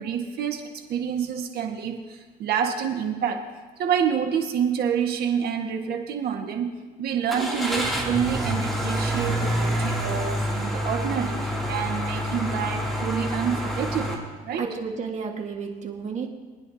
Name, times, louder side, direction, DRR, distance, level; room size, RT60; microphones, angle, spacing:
voice 1, 0.0-3.5 3.8-14.6, right 7 dB, 70° right, 4 dB, 1.6 m, -28 dB
Car / Engine starting, 7.3-14.1, equal, ahead, 2.9 m, -27 dB
voice 2, 14.6-16.3, right 5 dB, 45° right, 2 dB, 1.7 m, -31 dB
23.5 x 10.0 x 2.8 m, 1.4 s
cardioid pair, 110°, 17 cm